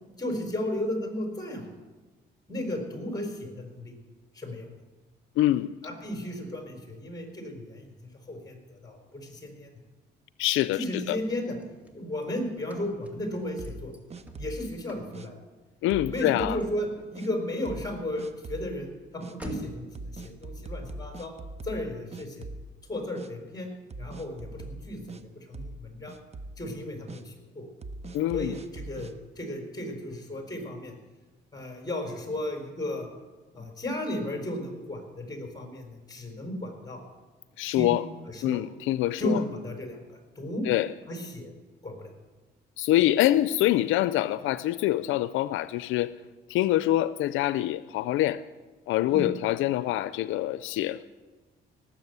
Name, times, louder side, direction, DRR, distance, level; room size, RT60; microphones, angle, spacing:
voice 1, 0.2-1.7 2.5-3.9 4.3-4.7 5.8-9.7 10.7-11.6 11.9-13.9 14.4-15.4 16.1-21.3 21.6-22.5 22.9-23.7 24.0-26.2 26.6-27.7 28.3-30.9 31.5-33.1 33.5-37.0 37.6-38.0 38.3-38.6 39.2-40.7 41.1-41.5 41.8-42.1 49.1-49.3, left 1 dB, 20° left, 4.4 m, -34 dB
voice 2, 5.4-5.7 10.4-10.8 11.1-11.2 15.8-16.6 28.1-28.5 37.6-38.1 38.4-39.4 40.7-40.9 42.8-46.1 46.5-48.4 48.9-51.0, left 14 dB, 90° left, 0.4 m, -25 dB
Car / Slam, 11.4-20.0, equal, 5° right, 2.2 m, -49 dB
sound 1, 13.6-14.7 15.1-15.3 15.9-16.7 17.2-17.3 17.7-17.9 18.2-18.7 19.2-19.4 20.0-21.9 22.1-22.9 23.2-23.3 23.9-25.2 25.5-25.8 26.1-26.6 27.1-27.2 27.8-29.1, right 2 dB, 35° right, 0.8 m, -41 dB
18.0 x 7.5 x 8.0 m
cardioid pair, 90°, 20 cm